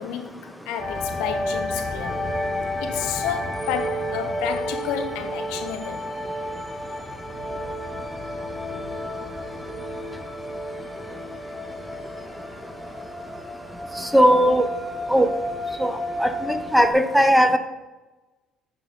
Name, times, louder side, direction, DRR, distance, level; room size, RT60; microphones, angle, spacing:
voice 1, 0.0-2.3 2.8-6.1, left 8 dB, 80° left, 0.7 m, -31 dB
sound 1, 0.8-16.9, left 1 dB, 15° left, 1.8 m, -31 dB
voice 2, 14.0-14.7 15.1-15.3 15.8-17.6, equal, 5° right, 0.8 m, -18 dB
9.2 x 3.7 x 5.1 m
supercardioid pair, 75°, 0 cm